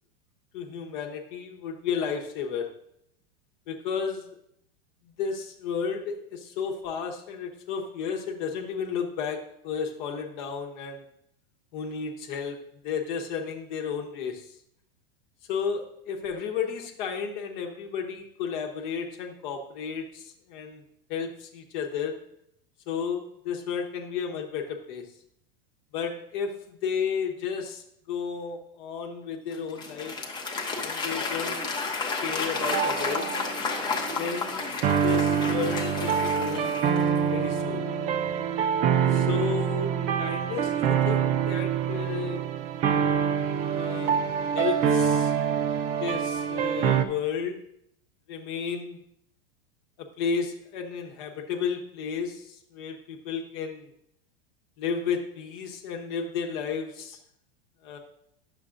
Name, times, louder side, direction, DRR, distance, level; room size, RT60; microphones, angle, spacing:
voice 1, 0.5-2.7 3.7-4.4 5.0-11.0 11.7-14.5 15.5-20.8 21.1-22.2 22.9-25.1 25.9-30.2 30.8-31.6 32.2-33.3 34.2-34.7 35.0-36.8 37.3-37.9 39.1-39.9 40.2-42.4 43.7-45.3 46.0-47.6 48.3-49.0 50.0-53.9 54.8-57.2 57.8-58.0, left 6 dB, 50° left, 2 dB, 1.0 m, -33 dB
Applause / Crowd, 29.5-37.3, left 4 dB, 15° left, 0.8 m, -32 dB
sound 1, 32.6-47.0, right 8 dB, 25° right, 0.3 m, -26 dB
9.8 x 6.8 x 2.5 m, 0.73 s
supercardioid pair, 140°, 29 cm